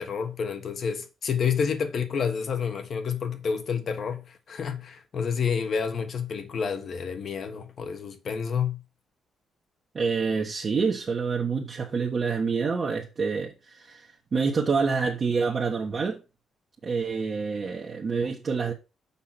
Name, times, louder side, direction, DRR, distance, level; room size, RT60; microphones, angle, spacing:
voice 1, 0.0-8.8, left 6 dB, 45° left, 1.4 m, -29 dB
voice 2, 9.9-16.2 16.8-18.7, right 5 dB, 35° right, 1.4 m, -27 dB
7.1 x 5.6 x 5.8 m
cardioid pair, 150°, 0 cm